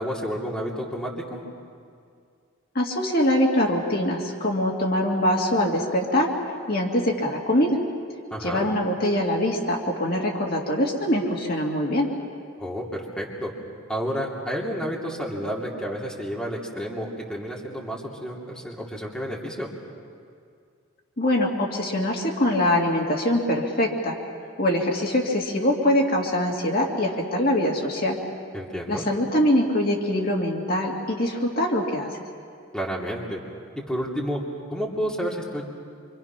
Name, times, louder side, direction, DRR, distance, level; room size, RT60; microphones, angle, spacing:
voice 1, 0.0-1.4 8.3-8.7 12.6-13.5 13.9-19.7 28.5-29.0 32.7-33.4 33.7-34.4 34.7-35.6, equal, 5° left, -4 dB, 2.8 m, -30 dB
voice 2, 2.7-6.3 6.6-7.8 8.4-12.1 21.2-24.2 24.6-28.2 28.9-32.2, left 1 dB, 50° left, -1 dB, 2.4 m, -23 dB
26.5 x 26.0 x 6.0 m, 2.2 s
head